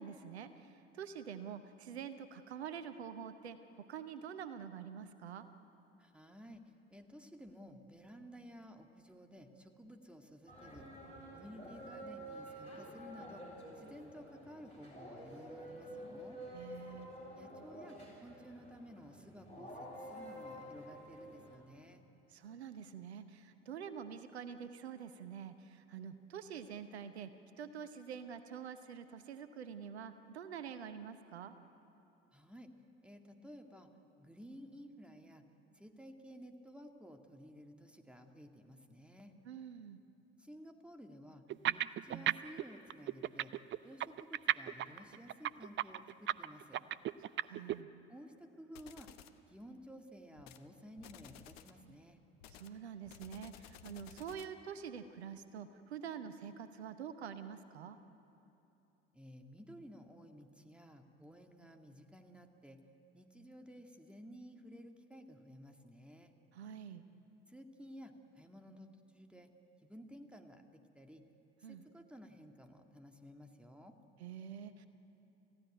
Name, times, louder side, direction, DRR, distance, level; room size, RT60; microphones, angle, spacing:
voice 1, 0.0-5.5 16.5-17.1 22.3-27.3 27.6-31.5 39.4-40.0 47.4-47.9 52.5-58.0 66.5-67.0 71.6-71.8 74.2-74.9, right 7 dB, 80° right, 11 dB, 0.9 m, -46 dB
voice 2, 6.0-6.6 6.9-10.9 11.3-13.4 13.8-16.4 17.3-22.0 32.3-32.7 33.0-33.9 34.2-35.4 35.7-39.3 40.4-41.4 41.7-43.5 43.8-46.8 48.1-49.1 49.5-52.2 59.1-62.8 63.1-66.3 67.5-68.9 69.1-69.5 69.8-71.2 71.6-73.9, equal, 5° right, 4 dB, 2.1 m, -54 dB
sound 1, 10.5-21.6, equal, 90° left, 4.3 m, -50 dB
sound 2, 41.5-42.6 42.9-47.8, right 12 dB, 35° right, 0.5 m, -34 dB
sound 3, 48.8-49.4 50.4-50.7 51.0-51.8 52.4-54.6, left 10 dB, 70° left, 1.0 m, -56 dB
28.5 x 15.5 x 9.1 m, 2.9 s
figure-of-eight pair, 55°, 32 cm